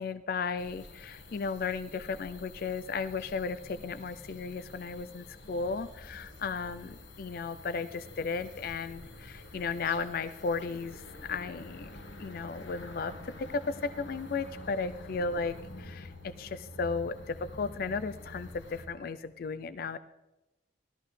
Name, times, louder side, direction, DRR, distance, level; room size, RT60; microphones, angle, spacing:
voice 1, 0.0-11.0 11.3-11.9 12.2-20.0, left 4 dB, 50° left, 12 dB, 0.4 m, -35 dB
sound 1, 0.6-18.9, left 1 dB, 85° left, 1.3 m, -48 dB
15.0 x 13.5 x 3.2 m, 0.98 s
head